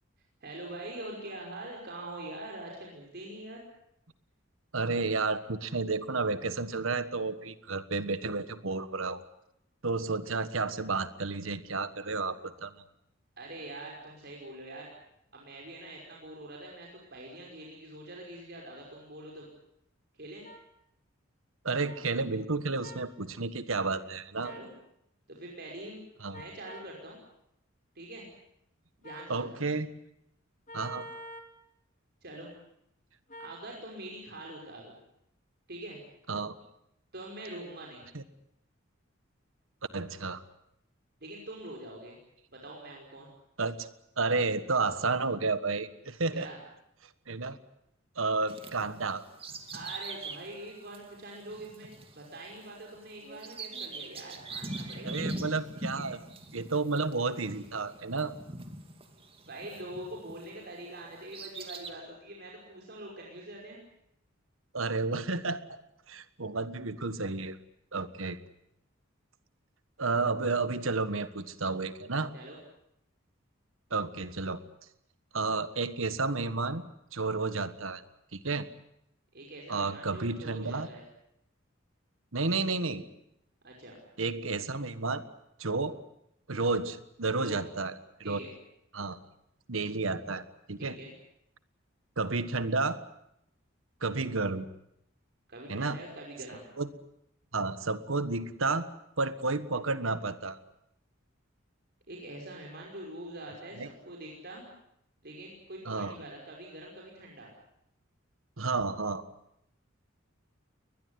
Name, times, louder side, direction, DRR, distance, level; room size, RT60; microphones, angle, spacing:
voice 1, 0.4-3.6 13.4-14.9 15.3-19.5 20.1-20.4 24.4-24.7 25.3-26.0 26.3-27.2 28.0-28.3 29.0-29.6 32.2-32.5 33.4-34.9 35.7-36.0 37.1-38.1 41.2-42.2 42.5-43.3 46.3-46.6 49.7-55.4 59.5-63.8 72.3-72.6 79.3-81.0 83.6-84.0 87.4-87.6 88.2-88.5 90.8-91.1 95.5-96.7 102.1-104.7 105.2-107.5, right 1 dB, 50° right, -1 dB, 5.5 m, -44 dB
voice 2, 4.7-9.2 9.8-12.7 21.6-24.5 26.2-26.4 29.3-29.9 30.7-31.1 36.3-36.5 38.1-38.2 39.9-40.4 43.6-43.9 44.2-46.5 47.3-47.6 48.2-49.2 55.0-56.2 56.5-58.3 64.7-65.8 66.1-67.6 67.9-68.4 70.0-72.3 73.9-74.6 75.3-76.8 77.1-78.0 78.3-78.7 79.7-80.9 82.3-83.0 84.2-85.2 85.6-86.0 86.5-87.9 88.2-88.4 88.9-89.2 89.7-91.0 92.2-93.0 94.0-94.7 95.7-96.0 96.8-96.9 97.5-98.9 99.2-100.6 103.8-103.9 105.8-106.1 108.6-109.2, right 3 dB, 80° right, 12 dB, 1.5 m, -31 dB
sound 1, 20.4-20.6 21.9-22.0 22.8-23.1 24.4-24.7 26.3-26.9 29.0-29.4 30.7-31.5 33.3-33.6, equal, 40° left, 2.8 m, -46 dB
Bird vocalization bird call bird song, 48.5-60.6 61.0-61.9, right 2 dB, 30° right, 2.6 m, -42 dB
22.0 x 20.5 x 9.7 m, 0.78 s
head